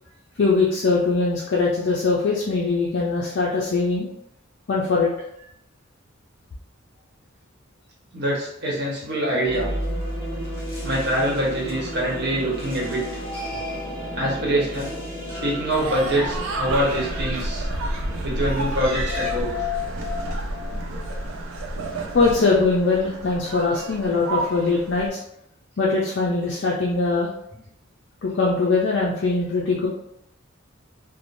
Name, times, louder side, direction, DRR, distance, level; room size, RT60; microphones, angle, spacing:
voice 1, 0.4-4.1 4.7-5.1 22.1-25.2 25.8-27.3 28.2-29.9, left 3 dB, 60° left, -4 dB, 0.4 m, -21 dB
voice 2, 8.1-9.7 10.8-13.0 14.1-14.9 15.4-17.7 18.2-19.6, right 1 dB, 55° right, -4 dB, 0.9 m, -24 dB
sound 1, 9.4-21.6, left 1 dB, 30° left, 1.4 m, -33 dB
sound 2, 15.7-25.1, right 2 dB, 90° right, 0.5 m, -30 dB
3.2 x 2.0 x 2.5 m, 0.76 s
head